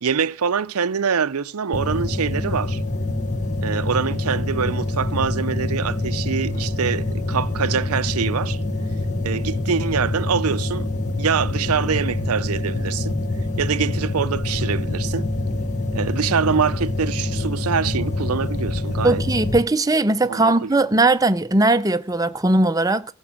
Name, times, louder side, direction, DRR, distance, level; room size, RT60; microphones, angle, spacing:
voice 1, 0.0-2.8 3.6-8.6 9.2-10.9 11.2-13.2 13.6-15.3 15.9-19.2 20.2-20.7, right 6 dB, 85° right, 0.6 m, -24 dB
sound 1, 1.7-19.6, left 2 dB, 35° left, 1.2 m, -25 dB
voice 2, 19.0-23.1, right 2 dB, 15° right, 0.6 m, -19 dB
15.0 x 6.1 x 7.6 m
head